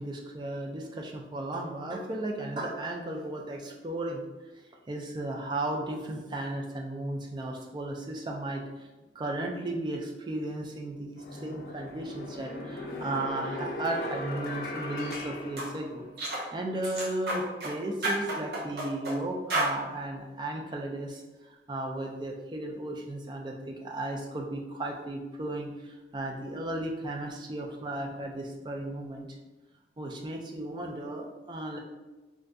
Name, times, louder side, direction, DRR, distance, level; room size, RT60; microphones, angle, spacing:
voice 1, 0.0-4.2 4.5-8.9 9.1-29.4 30.0-31.8, right 1 dB, 25° right, 1 dB, 0.3 m, -35 dB
sound 1, 10.4-10.5 11.1-16.3, left 1 dB, 50° left, 0.4 m, -38 dB
sound 2, 15.0-15.2 15.6-15.7 16.2-16.5 16.8-17.7 18.0-19.2 19.5-19.7, right 1 dB, 60° right, 0.8 m, -31 dB
3.7 x 2.5 x 2.2 m, 1.2 s
head